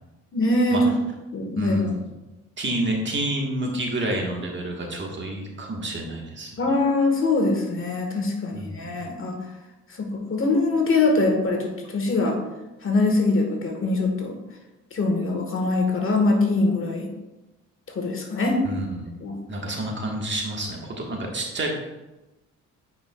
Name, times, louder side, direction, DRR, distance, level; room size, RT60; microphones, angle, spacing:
voice 1, 0.3-0.9 1.3-2.0 6.6-9.4 10.0-12.4 12.8-14.3 14.9-17.1 17.9-18.6 19.2-19.4, left 2 dB, 45° left, 2 dB, 1.3 m, -23 dB
voice 2, 1.6-2.0 2.6-6.5 8.5-9.0 18.6-19.1 19.5-21.7, right 1 dB, 40° right, 0 dB, 1.4 m, -29 dB
8.6 x 5.0 x 2.3 m, 1.0 s
cardioid pair, 90°, 30 cm